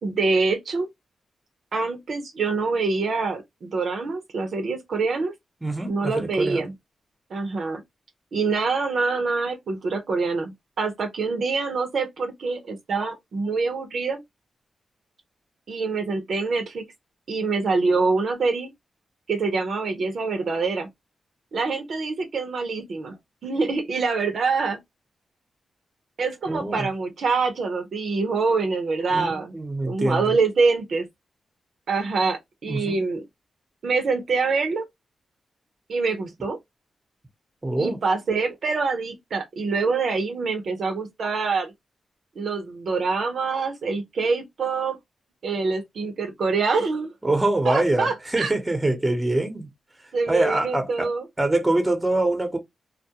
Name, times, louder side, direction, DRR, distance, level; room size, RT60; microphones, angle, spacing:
voice 1, 0.0-0.9 1.7-5.3 5.9-6.7 7.3-7.8 8.3-14.2 15.7-16.8 17.3-18.7 19.3-20.9 21.5-23.2 23.4-24.8 26.2-29.6 29.9-31.1 31.9-33.2 33.8-34.9 35.9-36.6 37.8-41.7 42.4-45.0 45.4-47.1 47.6-48.5 50.1-51.3, right 4 dB, 70° right, 0.7 m, -25 dB
voice 2, 5.6-6.7 26.5-26.9 29.1-30.4 32.7-33.0 37.6-38.0 47.2-49.7 50.3-51.1 51.4-52.6, right 2 dB, 20° right, 0.9 m, -24 dB
2.2 x 2.1 x 2.8 m
cardioid pair, 55°, 0 cm